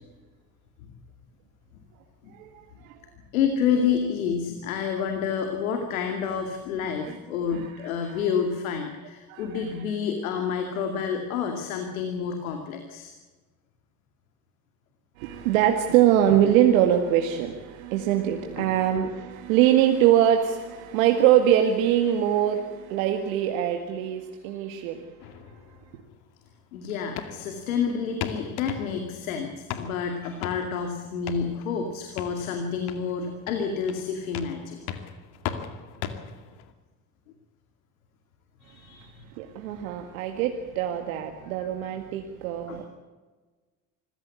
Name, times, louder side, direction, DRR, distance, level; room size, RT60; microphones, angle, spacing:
voice 1, 2.3-3.0 7.0-7.2 7.5-7.7 8.1-8.3 9.3-9.6 15.2-25.1 25.9-26.0 39.0-42.9, right 11 dB, 80° right, 4 dB, 2.1 m, -23 dB
voice 2, 3.3-13.1 18.6-18.7 26.7-34.8 38.6-39.2 42.7-42.8, left 6 dB, 90° left, 5 dB, 2.5 m, -29 dB
sound 1, 25.2-36.7, left 9 dB, 70° left, 2.4 m, -39 dB
25.5 x 16.0 x 8.4 m, 1.3 s
hypercardioid pair, 70°, 40 cm